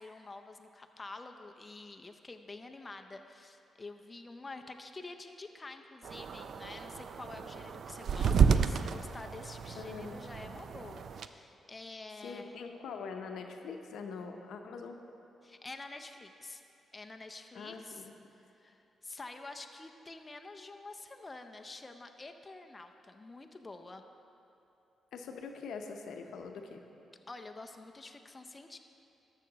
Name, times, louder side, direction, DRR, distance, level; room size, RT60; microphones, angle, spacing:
voice 1, 0.0-12.6 15.4-16.6 16.9-18.1 18.5-24.0 27.3-28.8, left 3 dB, 25° left, 5 dB, 0.5 m, -48 dB
sound 1, 6.0-11.3, right 6 dB, 65° right, 0.3 m, -31 dB
voice 2, 9.7-10.3 12.2-15.0 17.5-18.1 25.1-26.8, left 5 dB, 80° left, 4 dB, 0.7 m, -43 dB
13.0 x 6.5 x 3.9 m, 2.8 s
cardioid pair, 80°, 0 cm